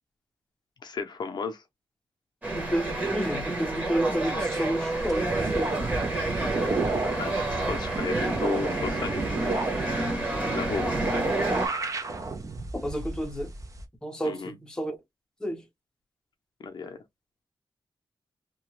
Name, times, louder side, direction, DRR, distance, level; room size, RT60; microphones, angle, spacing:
voice 1, 0.8-1.6 7.0-9.3 10.4-10.9 14.2-14.5 16.6-17.0, left 5 dB, 55° left, 0.6 m, -34 dB
sound 1, 2.4-11.7, right 2 dB, 20° right, 1.2 m, -30 dB
voice 2, 2.5-5.8 12.8-13.5 14.0-15.0 15.4-15.6, equal, 10° left, 0.6 m, -31 dB
sound 2, 5.0-13.8, right 3 dB, 40° right, 0.6 m, -31 dB
2.8 x 2.2 x 3.0 m
wide cardioid pair, 145°, 9 cm